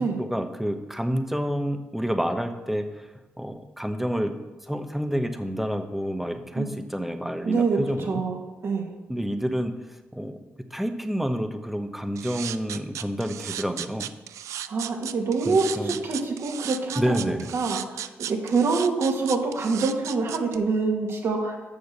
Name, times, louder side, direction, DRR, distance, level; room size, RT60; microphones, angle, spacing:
voice 1, 0.0-3.1 3.4-8.2 9.1-9.7 10.1-10.4 10.7-14.1 15.4-15.9 16.9-17.5, equal, 5° right, 7 dB, 1.0 m, -29 dB
voice 2, 7.4-8.9 14.7-21.5, right 4 dB, 60° right, 0 dB, 2.1 m, -26 dB
sound 1, 12.2-20.6, right 11 dB, 80° right, 0.4 m, -35 dB
7.1 x 6.4 x 6.7 m, 1.2 s
supercardioid pair, 60°, 5 cm